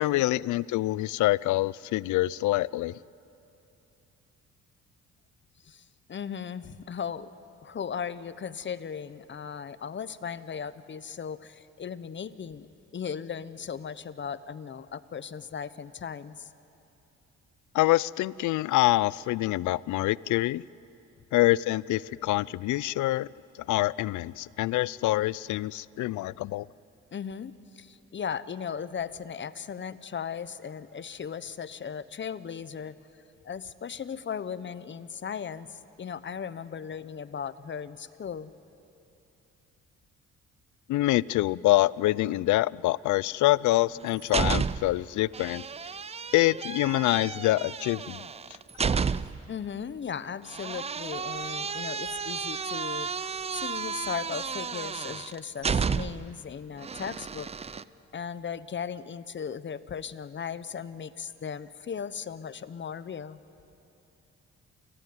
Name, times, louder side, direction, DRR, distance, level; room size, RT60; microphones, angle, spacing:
voice 1, 0.0-2.9 17.7-20.6 21.3-23.3 23.7-26.7 40.9-45.6 46.3-48.2, left 17 dB, 75° left, 23 dB, 0.5 m, -25 dB
voice 2, 5.6-7.3 7.6-12.7 12.9-16.5 27.1-32.9 33.4-38.5 49.5-53.1 53.5-57.5 58.1-63.4, left 7 dB, 40° left, 15 dB, 0.9 m, -37 dB
sound 1, 43.7-45.0 45.3-49.5 50.5-56.3 56.8-57.8, right 5 dB, 20° right, 0.4 m, -32 dB
29.0 x 14.5 x 9.4 m, 2.9 s
cardioid pair, 90°, 30 cm